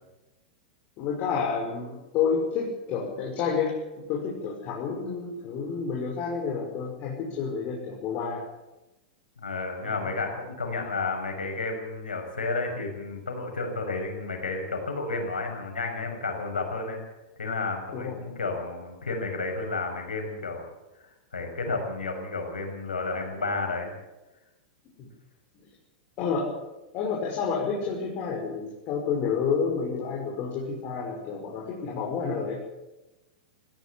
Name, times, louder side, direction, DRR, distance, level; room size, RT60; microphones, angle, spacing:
voice 1, 1.0-8.4 9.8-10.0 17.9-18.1 25.0-25.1 26.2-26.4 26.9-32.7, left 5 dB, 45° left, -2 dB, 5.7 m, -29 dB
voice 2, 9.4-17.0 17.4-20.6 20.9-24.0, left 3 dB, 90° left, 4 dB, 6.3 m, -31 dB
19.5 x 16.5 x 8.5 m, 1.0 s
hypercardioid pair, 105°, 5 cm